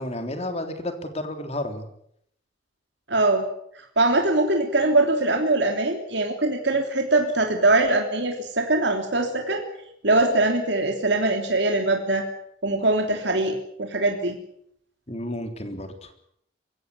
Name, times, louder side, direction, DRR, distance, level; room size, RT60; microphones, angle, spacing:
voice 1, 0.0-1.8 15.1-16.1, left 1 dB, 35° left, 7 dB, 3.5 m, -31 dB
voice 2, 3.1-3.5 4.0-9.6 10.0-12.2 12.6-14.4, right 2 dB, 65° right, 3 dB, 3.3 m, -22 dB
23.0 x 16.5 x 9.8 m, 0.71 s
head